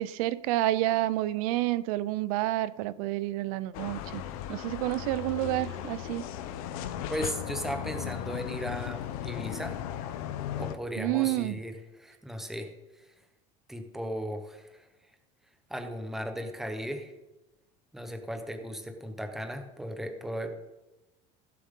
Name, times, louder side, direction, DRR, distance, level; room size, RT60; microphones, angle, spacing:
voice 1, 0.0-4.2 4.5-6.2 11.0-11.6, right 16 dB, 80° right, 0.5 m, -29 dB
sound 1, 3.7-10.7, left 10 dB, 90° left, 0.9 m, -36 dB
voice 2, 7.1-9.8 10.6-12.7 13.7-14.9 15.7-17.1 17.9-20.5, equal, ahead, 0.9 m, -36 dB
16.5 x 7.6 x 3.7 m
cardioid pair, 170°, 18 cm